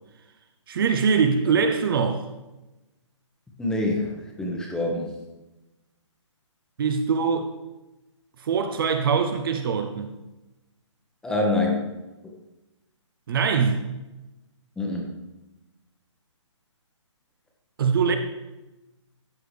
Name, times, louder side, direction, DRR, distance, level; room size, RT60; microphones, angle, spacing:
voice 1, 0.7-2.3 6.8-7.5 8.4-10.1 13.3-13.8 17.8-18.2, right 6 dB, 45° right, 0.7 m, -23 dB
voice 2, 3.6-5.1 11.2-12.0 14.8-15.1, left 2 dB, 5° left, 1.0 m, -26 dB
13.0 x 4.9 x 3.3 m
hypercardioid pair, 150°, 16 cm